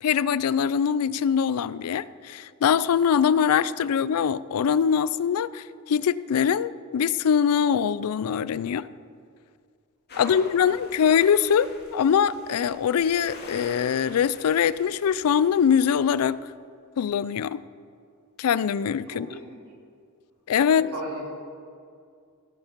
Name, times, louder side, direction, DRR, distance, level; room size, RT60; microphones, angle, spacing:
voice 1, 0.0-8.9 10.2-16.4 17.0-17.6 18.4-19.3 20.5-20.9, left 7 dB, 70° left, 18 dB, 0.4 m, -23 dB
sound 1, 10.1-16.2, left 2 dB, 45° left, 2.0 m, -46 dB
voice 2, 10.1-10.6 19.1-19.6 20.6-21.3, right 1 dB, 85° right, -3 dB, 3.4 m, -38 dB
16.5 x 7.2 x 5.2 m, 2.2 s
head